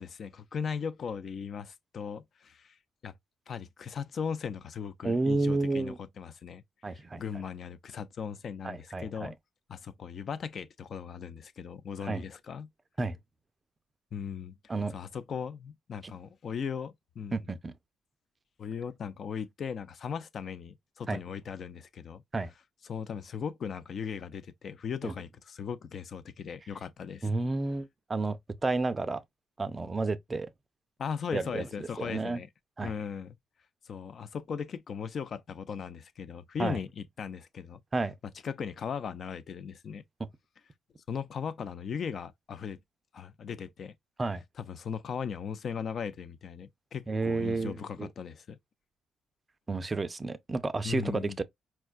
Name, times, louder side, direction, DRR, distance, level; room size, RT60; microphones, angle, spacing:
voice 1, 0.0-2.8 3.0-3.1 3.5-6.6 6.9-9.3 9.7-12.7 14.1-14.6 14.9-17.5 18.6-22.2 22.8-27.3 31.0-32.5 32.8-33.4 33.8-37.8 38.2-40.0 41.1-42.8 43.1-43.9 44.6-48.6 50.8-51.4, left 7 dB, 55° left, 0.4 m, -38 dB
voice 2, 5.0-6.0 6.8-7.2 8.6-9.3 12.0-12.2 13.0-13.2 14.7-14.9 16.0-16.1 17.3-17.7 21.1-21.2 22.3-22.5 25.0-25.1 27.2-29.2 29.6-30.5 31.3-31.7 32.0-32.4 32.8-32.9 36.6-36.8 37.9-38.1 44.2-44.4 47.1-48.1 49.7-51.4, right 3 dB, 25° right, 0.4 m, -31 dB
4.4 x 2.2 x 2.3 m
cardioid pair, 90°, 0 cm